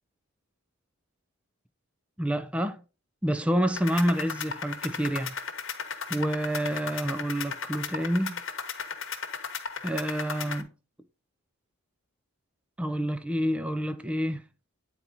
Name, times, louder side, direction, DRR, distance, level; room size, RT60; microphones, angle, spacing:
voice 1, 2.2-2.8 3.2-5.4 6.1-8.4 9.8-10.7 12.8-14.4, equal, 5° right, 0.4 m, -28 dB
sound 1, 3.8-10.6, left 6 dB, 60° left, 1.0 m, -36 dB
9.3 x 4.4 x 4.0 m
head